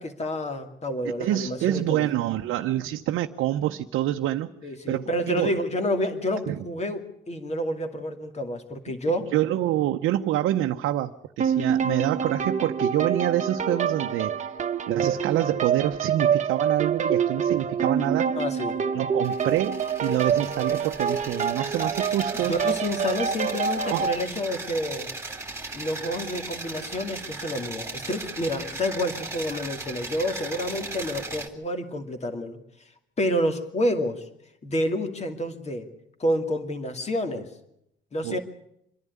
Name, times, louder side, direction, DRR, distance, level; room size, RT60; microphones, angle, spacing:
voice 1, 0.0-2.1 4.6-7.0 7.3-9.3 18.4-18.8 22.3-25.1 25.7-32.6 33.2-34.2 34.6-35.9 36.2-37.5 38.1-38.4, equal, 35° left, 7 dB, 2.6 m, -29 dB
voice 2, 1.0-4.5 4.9-5.5 6.5-6.6 9.3-14.5 14.9-18.3 18.9-22.5 23.8-24.1 38.2-38.4, right 13 dB, 80° right, 4 dB, 0.8 m, -26 dB
sound 1, 11.4-24.2, right 7 dB, 35° right, 1.2 m, -26 dB
sound 2, 19.2-31.5, right 3 dB, 15° right, 2.4 m, -37 dB
26.5 x 11.0 x 9.6 m, 0.79 s
cardioid pair, 100°, 20 cm